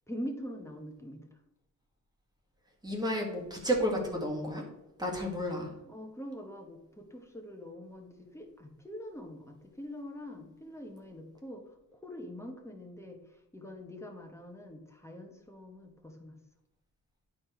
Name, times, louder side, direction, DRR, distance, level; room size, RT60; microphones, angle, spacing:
voice 1, 0.1-1.4 5.8-11.6 11.9-16.4, equal, 10° left, 2 dB, 1.2 m, -44 dB
voice 2, 2.8-4.6 5.0-5.7, equal, 10° right, 0 dB, 1.8 m, -31 dB
10.0 x 4.4 x 4.4 m, 0.94 s
wide cardioid pair, 130°, 33 cm